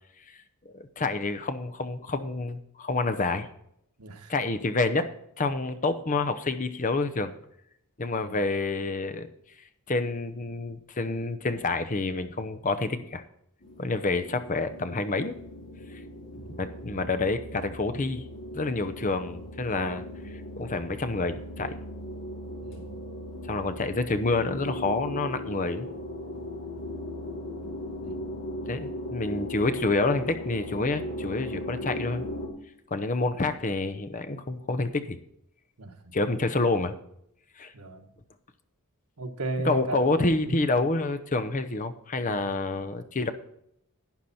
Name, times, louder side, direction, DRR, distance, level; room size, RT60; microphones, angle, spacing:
voice 1, 0.7-3.5 4.3-5.1 5.4-7.3 8.0-9.3 9.9-13.2 13.8-15.4 16.6-18.3 18.5-20.0 20.6-21.7 23.5-25.9 28.7-32.3 32.9-35.2 36.1-36.9 37.6-37.7 39.6-43.3, left 3 dB, 35° left, 10 dB, 0.7 m, -28 dB
voice 2, 4.0-4.3 8.2-8.4 16.4-16.6 22.6-22.9 28.0-28.2 35.8-36.1 37.7-38.1 39.2-40.0 40.4-40.6 42.2-42.7, right 2 dB, 85° right, 5 dB, 1.5 m, -36 dB
sound 1, 13.6-32.5, left 1 dB, 55° left, 2.8 m, -38 dB
11.5 x 9.3 x 4.3 m, 0.75 s
head